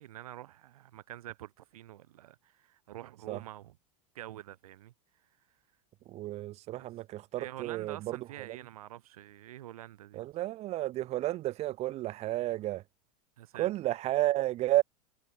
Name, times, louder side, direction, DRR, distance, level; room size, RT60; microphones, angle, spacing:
voice 1, 0.0-3.7 4.1-4.9 6.7-6.9 7.4-10.2 13.4-13.7, right 13 dB, 90° right, 3.2 m, -46 dB
voice 2, 6.0-8.6 10.1-12.8 13.5-14.8, right 15 dB, 35° right, 3.4 m, -32 dB
supercardioid pair, 150°, 18 cm